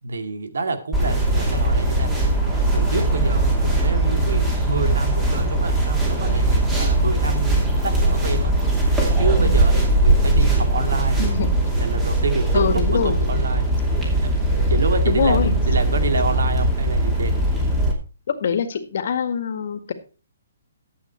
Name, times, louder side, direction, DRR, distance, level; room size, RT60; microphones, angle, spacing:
voice 1, 0.0-2.1 2.7-8.5 9.0-11.2 11.7-12.6 12.9-13.7 14.1-14.3 14.7-17.3, right 3 dB, 85° right, 9 dB, 2.3 m, -27 dB
sound 1, 0.9-17.9, right 1 dB, 10° right, 2.6 m, -20 dB
voice 2, 11.2-11.5 12.5-13.2 15.1-15.5 18.3-19.9, left 7 dB, 50° left, 9 dB, 1.9 m, -24 dB
12.5 x 8.3 x 4.5 m, 0.34 s
hypercardioid pair, 165°, 0 cm